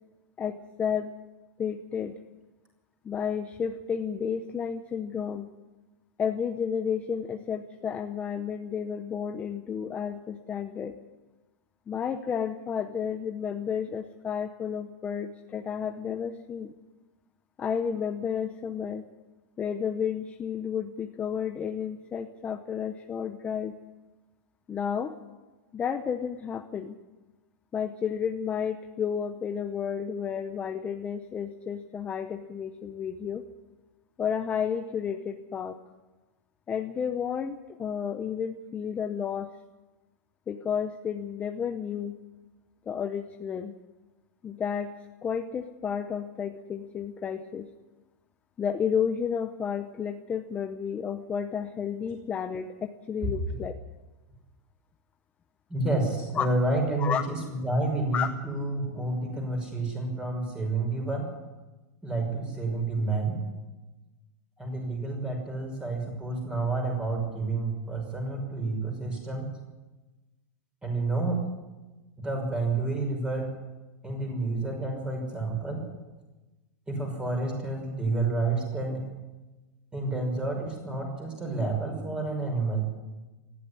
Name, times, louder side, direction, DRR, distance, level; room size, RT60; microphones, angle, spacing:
voice 1, 0.4-1.1 1.6-2.2 3.0-5.5 6.2-10.9 11.9-16.7 17.6-19.0 19.6-23.7 24.7-25.1 25.7-27.0 27.7-33.4 34.2-35.8 36.7-39.6 40.5-42.2 42.9-43.7 44.4-44.9 45.2-47.7 48.6-53.8 56.3-56.5 57.0-57.2 58.1-58.3, left 7 dB, 15° left, 7 dB, 0.8 m, -31 dB
voice 2, 55.7-61.3 62.0-63.4 64.6-69.5 70.8-71.4 72.2-73.5 74.0-75.8 76.9-79.1 79.9-82.9, right 2 dB, 10° right, 2 dB, 5.7 m, -29 dB
19.0 x 14.5 x 9.9 m, 1.1 s
supercardioid pair, 165°, 10 cm